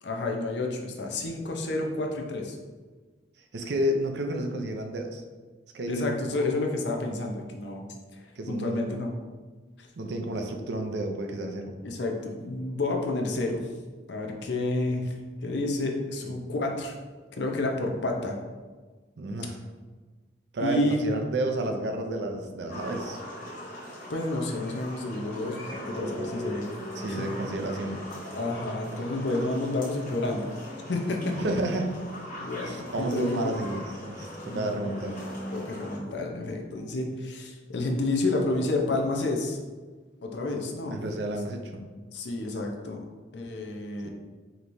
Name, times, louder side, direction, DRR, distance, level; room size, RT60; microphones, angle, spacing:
voice 1, 0.0-2.6 5.9-7.9 8.2-9.1 9.8-9.9 11.8-13.6 14.1-16.9 17.3-18.4 20.6-21.0 24.1-26.7 27.1-27.3 28.3-30.4 30.9-31.4 32.4-33.5 34.4-34.8 35.5-39.6 40.2-41.0 42.1-43.0 43.3-44.1, left 2 dB, 65° left, 2 dB, 0.6 m, -30 dB
voice 2, 3.5-5.2 5.7-6.1 8.4-8.9 10.0-11.8 16.2-16.3 19.2-19.6 20.5-23.2 27.0-28.1 31.4-31.9 32.6-35.2 40.9-41.9 44.0-44.1, right 1 dB, 60° right, 4 dB, 0.5 m, -31 dB
sound 1, 22.7-36.0, equal, 45° left, 1.0 m, -39 dB
5.1 x 3.0 x 2.6 m, 1.4 s
head